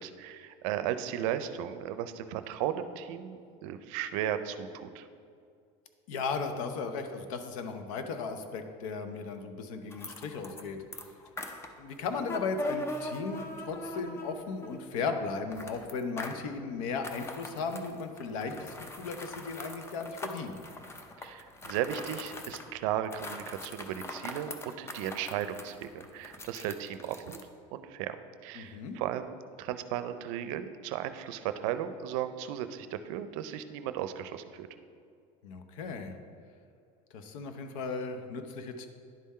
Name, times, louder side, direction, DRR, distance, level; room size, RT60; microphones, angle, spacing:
voice 1, 0.0-5.1 21.2-27.4 27.7-28.2 28.4-34.7, right 10 dB, 75° right, 11 dB, 0.5 m, -35 dB
voice 2, 6.1-11.1 11.8-20.6 28.5-29.0 35.4-36.1 37.1-38.9, left 4 dB, 85° left, 7 dB, 0.8 m, -36 dB
sound 1, 9.9-10.6 10.9-14.9 15.5-16.5 16.9-22.7 23.0-27.4, left 1 dB, 15° left, 0.5 m, -42 dB
10.5 x 3.7 x 4.2 m, 2.3 s
supercardioid pair, 135°, 17 cm